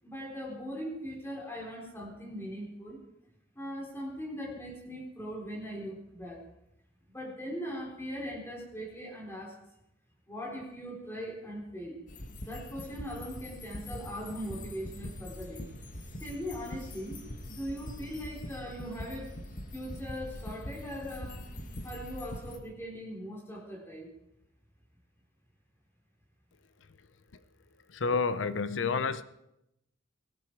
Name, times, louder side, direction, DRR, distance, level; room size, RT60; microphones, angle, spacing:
voice 1, 0.0-3.0 3.5-6.4 7.1-9.6 10.3-12.0 12.4-15.6 16.2-19.4 19.7-21.5 21.8-24.1, equal, 15° left, -2 dB, 4.1 m, -40 dB
sound 1, 12.1-22.6, left 1 dB, 45° left, 1.9 m, -43 dB
voice 2, 27.9-29.2, left 4 dB, 80° left, 13 dB, 0.7 m, -29 dB
18.5 x 16.0 x 4.7 m, 0.84 s
head